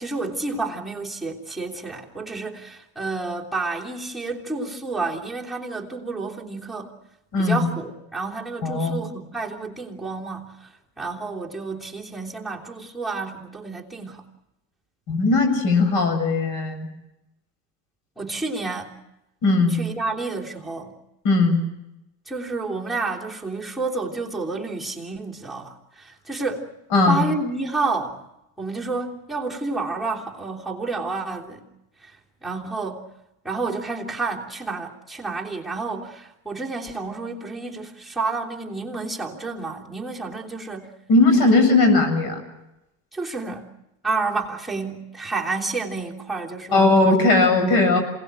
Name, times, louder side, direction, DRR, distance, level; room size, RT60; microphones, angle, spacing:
voice 1, 0.0-6.9 7.4-10.5 11.0-14.2 18.2-19.0 19.7-20.9 22.3-26.7 27.1-28.2 28.6-31.6 32.0-32.1 32.4-33.0 33.4-40.9 41.3-41.5 43.1-43.7 44.0-47.2, right 3 dB, ahead, -4 dB, 3.2 m, -30 dB
voice 2, 7.3-7.7 8.6-9.0 15.1-16.9 19.4-19.8 21.2-21.6 26.9-27.2 41.1-42.4 46.7-48.0, left 3 dB, 55° left, 6 dB, 7.5 m, -18 dB
27.5 x 19.0 x 7.9 m, 0.90 s
cardioid pair, 130°, 44 cm